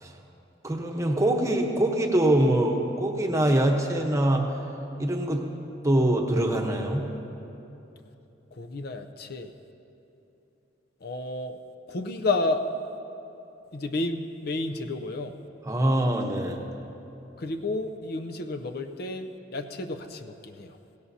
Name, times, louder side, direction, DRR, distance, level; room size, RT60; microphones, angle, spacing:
voice 1, 0.6-4.5 5.0-5.4 5.8-7.0 15.7-16.6, right 1 dB, 15° right, 2 dB, 1.0 m, -23 dB
voice 2, 8.5-9.5 11.0-11.6 11.9-12.7 13.7-15.4 17.4-20.8, left 2 dB, 55° left, 7 dB, 0.6 m, -31 dB
17.5 x 17.0 x 2.8 m, 2.9 s
head